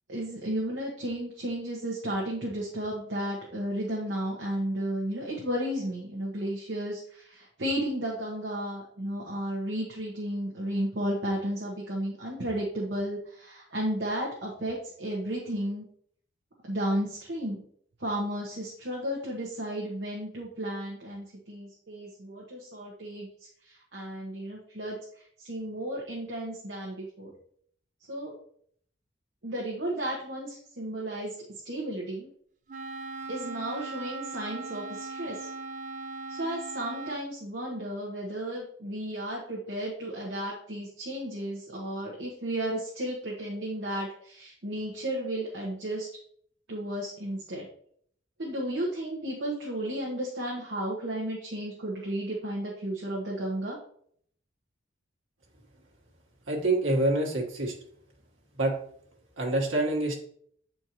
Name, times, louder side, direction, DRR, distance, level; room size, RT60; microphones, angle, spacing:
voice 1, 0.1-15.9 16.7-17.6 18.0-23.3 23.6-25.0 25.4-27.3 28.1-28.3 29.4-31.3 31.6-32.3 33.3-35.5 36.3-46.1 46.7-47.7 48.4-53.8, right 1 dB, 60° right, -3 dB, 1.2 m, -33 dB
Wind instrument woodwind instrument, 32.7-37.3, right 3 dB, 40° right, 0.5 m, -39 dB
voice 2, 56.5-57.7 58.6-58.7 59.4-60.1, right 2 dB, 85° right, -1 dB, 1.5 m, -26 dB
8.1 x 4.4 x 3.0 m, 0.63 s
head